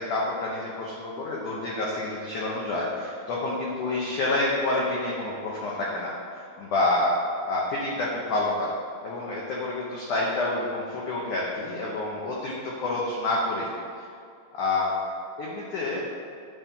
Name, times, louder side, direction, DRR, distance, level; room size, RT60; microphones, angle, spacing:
voice 1, 0.0-7.2 7.5-8.7 9.0-13.7 14.0-14.1 14.5-14.9 15.4-16.0, left 2 dB, 85° left, -5 dB, 1.8 m, -28 dB
9.6 x 3.8 x 6.8 m, 2.3 s
omnidirectional pair, 5.0 m